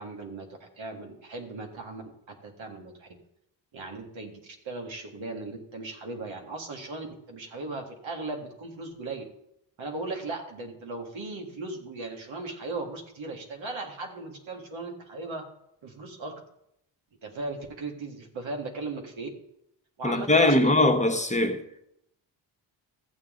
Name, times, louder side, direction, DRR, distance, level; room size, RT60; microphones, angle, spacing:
voice 1, 0.0-3.1 3.7-9.2 9.8-15.5 15.8-16.3 17.2-19.3 20.0-20.7, right 3 dB, 75° right, 2.1 m, -37 dB
voice 2, 20.0-21.6, left 2 dB, 15° left, 1.2 m, -21 dB
14.0 x 7.4 x 3.8 m
cardioid pair, 65°, 47 cm